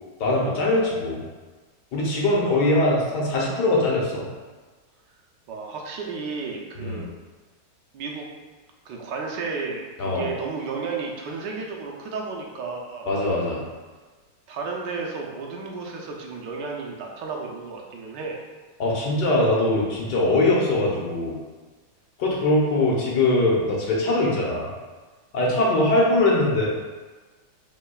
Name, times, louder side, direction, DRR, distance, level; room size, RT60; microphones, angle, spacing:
voice 1, 0.2-1.2 1.9-4.2 6.8-7.0 10.0-10.3 13.1-13.6 18.8-21.4 22.2-24.7 25.3-26.7, left 2 dB, 70° left, -4 dB, 1.5 m, -22 dB
voice 2, 2.5-2.8 5.5-7.1 7.9-8.3 8.8-13.1 14.5-18.4 25.6-25.8, right 4 dB, 75° right, -1 dB, 1.3 m, -33 dB
5.4 x 3.7 x 2.3 m, 1.3 s
omnidirectional pair, 1.9 m